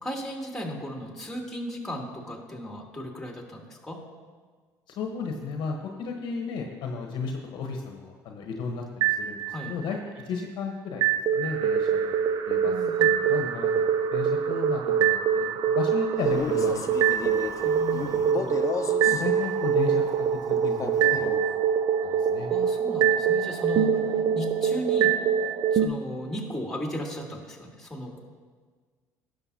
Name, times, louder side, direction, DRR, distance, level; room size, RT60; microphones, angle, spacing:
voice 1, 0.0-4.0 9.5-9.7 12.6-13.3 17.6-18.6 22.5-25.2 25.7-28.2, equal, 5° left, -1 dB, 2.6 m, -36 dB
voice 2, 4.9-11.1 11.3-12.1 12.5-12.7 13.0-13.7 14.1-17.5 18.1-18.2 19.0-20.0 20.5-21.4 22.0-22.5, left 5 dB, 60° left, 2 dB, 1.1 m, -34 dB
sound 1, 9.0-10.0 11.0-25.9, right 8 dB, 55° right, 0.6 m, -24 dB
Male speech man speaking, 16.2-19.3 20.6-21.3, left 6 dB, 40° left, 0.8 m, -34 dB
17.0 x 6.7 x 2.8 m, 1.5 s
hypercardioid pair, 60°, 9 cm